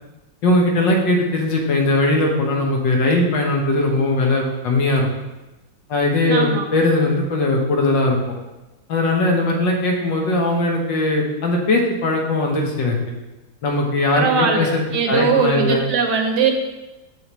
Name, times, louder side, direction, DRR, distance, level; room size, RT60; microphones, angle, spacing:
voice 1, 0.4-5.1 5.9-8.2 8.9-13.0 13.6-14.8 15.1-15.8, left 2 dB, 75° left, 0 dB, 1.9 m, -19 dB
voice 2, 6.3-6.7 14.1-16.5, right 5 dB, 65° right, 3 dB, 1.4 m, -20 dB
7.7 x 6.8 x 3.1 m, 1.1 s
omnidirectional pair, 2.0 m